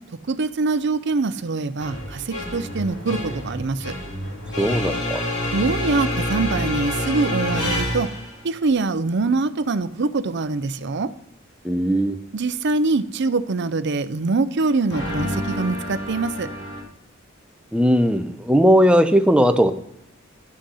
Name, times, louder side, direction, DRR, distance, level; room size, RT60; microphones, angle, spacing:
voice 1, 0.3-3.9 5.5-8.1 8.4-11.1 12.3-16.5, right 3 dB, 55° right, 14 dB, 0.6 m, -24 dB
sound 1, 1.8-8.4 14.9-16.8, left 1 dB, 60° left, 3.0 m, -28 dB
voice 2, 4.6-5.2 11.6-12.1 17.7-19.7, equal, 5° right, 7 dB, 0.7 m, -18 dB
11.5 x 6.3 x 5.6 m, 0.78 s
head